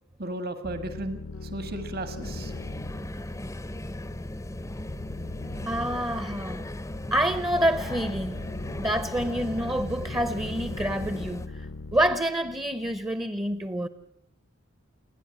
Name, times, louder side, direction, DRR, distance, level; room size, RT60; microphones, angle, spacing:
voice 1, 0.2-2.5, right 1 dB, 50° right, 1.7 m, -35 dB
sound 1, 0.6-13.1, left 2 dB, 70° left, 0.9 m, -41 dB
sound 2, 2.2-11.5, left 1 dB, 15° left, 0.7 m, -37 dB
voice 2, 5.6-6.6 7.1-8.4 8.8-11.7 11.9-13.9, right 1 dB, 15° right, 0.8 m, -27 dB
29.5 x 10.5 x 8.9 m
head